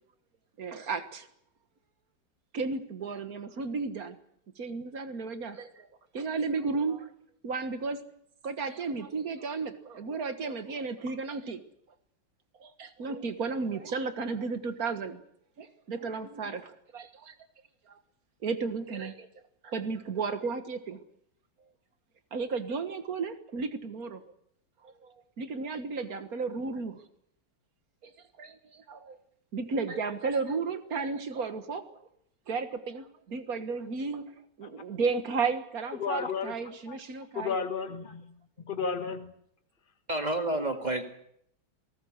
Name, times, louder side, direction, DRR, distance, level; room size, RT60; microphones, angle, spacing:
voice 1, 0.6-1.3 2.5-4.2 4.6-5.9 6.1-7.1 7.4-8.0 8.4-11.6 12.6-15.2 15.6-17.4 17.9-18.0 18.4-19.3 19.6-21.0 22.3-24.2 24.8-27.1 28.0-28.1 28.4-29.2 29.5-32.1 32.5-37.5, right 4 dB, 50° right, 10 dB, 1.8 m, -34 dB
voice 2, 36.0-36.5 36.9-37.0 37.3-38.4 38.6-39.3, left 5 dB, 25° left, 7 dB, 1.6 m, -32 dB
voice 3, 40.1-41.0, right 1 dB, 20° right, 5 dB, 2.1 m, -29 dB
26.5 x 19.0 x 6.6 m, 0.72 s
omnidirectional pair, 2.2 m